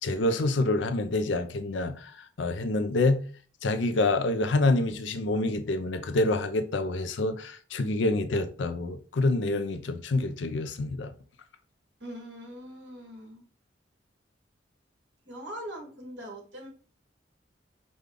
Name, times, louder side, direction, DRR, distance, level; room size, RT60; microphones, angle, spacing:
voice 1, 0.0-2.1 2.4-3.2 3.6-11.1, left 2 dB, 75° left, 0.5 m, -27 dB
voice 2, 12.0-13.4 15.3-16.7, equal, 70° right, 1.8 m, -42 dB
5.1 x 2.3 x 3.7 m
head